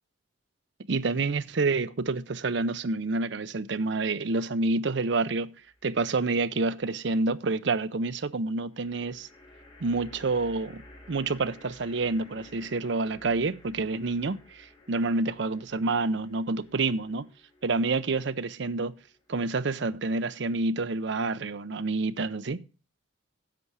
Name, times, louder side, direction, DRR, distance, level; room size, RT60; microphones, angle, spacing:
voice 1, 0.9-5.5 5.8-9.3 9.8-10.8 11.1-17.3 17.6-19.0 19.3-22.6, right 3 dB, 60° right, 0.6 m, -28 dB
sound 1, 5.6-6.2 8.7-20.1, left 1 dB, 25° left, 2.7 m, -54 dB
11.0 x 7.0 x 4.8 m
head